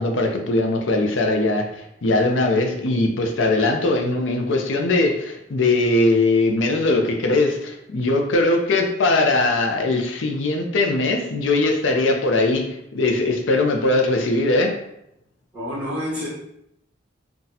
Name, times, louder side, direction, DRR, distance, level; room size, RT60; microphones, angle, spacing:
voice 1, 0.0-1.7 2.0-12.7 12.9-14.7, left 2 dB, 70° left, 3 dB, 0.5 m, -20 dB
voice 2, 15.5-16.3, equal, 5° right, -9 dB, 1.3 m, -28 dB
3.9 x 2.3 x 2.7 m, 0.78 s
head